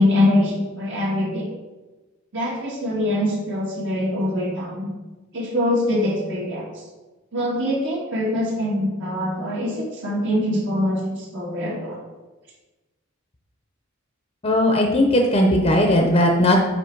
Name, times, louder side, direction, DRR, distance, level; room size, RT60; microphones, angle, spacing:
voice 1, 0.0-1.5 2.3-4.9 5.3-6.7 7.3-12.0, left 1 dB, 60° right, -4 dB, 1.8 m, -23 dB
voice 2, 14.4-16.6, left 1 dB, 30° left, 2 dB, 0.7 m, -17 dB
9.5 x 3.2 x 4.6 m, 1.2 s
head